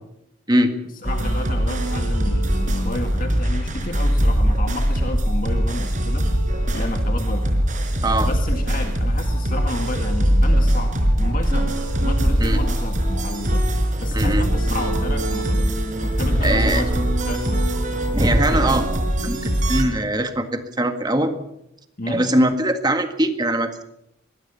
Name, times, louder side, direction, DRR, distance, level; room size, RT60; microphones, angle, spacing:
voice 1, 1.0-6.3 6.7-7.6 8.2-15.7 16.0-17.7 22.0-22.3, left 1 dB, 45° left, 4 dB, 1.9 m, -31 dB
sound 1, 1.0-19.8, equal, 40° right, 4.7 m, -21 dB
voice 2, 14.1-14.4 16.4-16.8 18.1-18.9 19.2-19.4 19.7-21.3 22.1-23.8, right 1 dB, 20° right, 7 dB, 1.7 m, -21 dB
24.5 x 21.0 x 5.7 m, 0.79 s
head